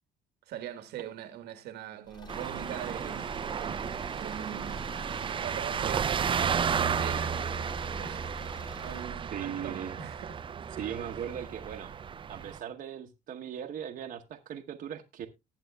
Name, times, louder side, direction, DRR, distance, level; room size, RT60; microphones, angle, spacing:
voice 1, 0.5-3.8 4.2-4.8 5.3-8.2 8.8-10.8, right 10 dB, 80° right, 1.4 m, -42 dB
Car / Engine, 2.1-9.1, left 2 dB, 25° left, 1.9 m, -47 dB
sound 1, 2.3-12.6, right 7 dB, 30° right, 0.5 m, -33 dB
voice 2, 9.3-10.0 10.8-11.9 12.3-15.3, right 9 dB, 55° right, 0.9 m, -38 dB
19.0 x 7.6 x 2.2 m
cardioid pair, 110°, 17 cm